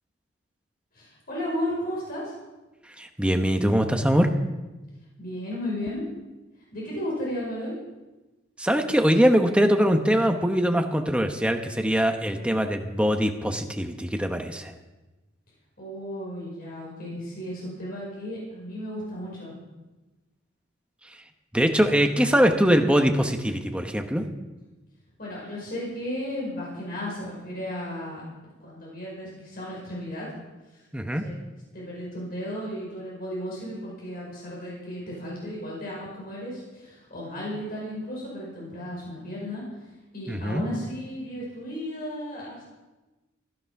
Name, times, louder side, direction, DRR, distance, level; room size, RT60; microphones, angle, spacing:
voice 1, 0.9-2.3 5.2-6.1 6.7-7.8 15.8-19.5 25.2-28.2 28.6-30.3 30.7-30.9 31.2-31.4 31.7-42.6, equal, 50° left, -5 dB, 5.3 m, -34 dB
voice 2, 3.0-4.3 8.6-14.7 21.5-24.2 30.9-31.2 40.3-40.6, equal, 5° right, 4 dB, 1.1 m, -22 dB
16.0 x 12.0 x 5.9 m, 1.1 s
head